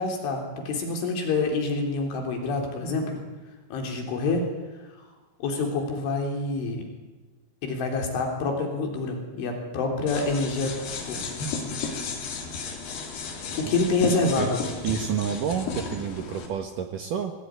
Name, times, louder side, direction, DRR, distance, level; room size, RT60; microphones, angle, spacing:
voice 1, 0.0-3.2 3.7-4.5 5.4-6.9 7.6-11.2 13.5-14.6, left 3 dB, 90° left, 2 dB, 6.0 m, -27 dB
sound 1, 10.1-16.5, left 4 dB, 60° left, 4.7 m, -34 dB
voice 2, 14.0-14.5 14.8-17.3, right 8 dB, 65° right, 6 dB, 2.2 m, -29 dB
21.5 x 17.5 x 9.7 m, 1.2 s
omnidirectional pair, 5.3 m